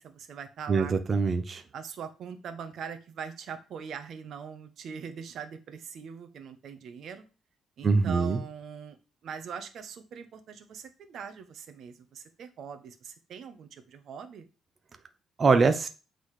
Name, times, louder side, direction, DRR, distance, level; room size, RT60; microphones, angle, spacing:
voice 1, 0.0-1.2 1.7-7.2 7.8-9.0 9.2-14.5, right 7 dB, 60° right, 9 dB, 1.2 m, -42 dB
voice 2, 0.7-1.6 7.8-8.4 15.4-15.9, right 4 dB, 35° right, 9 dB, 0.8 m, -23 dB
8.5 x 4.1 x 4.9 m, 0.33 s
cardioid pair, 110°, 0 cm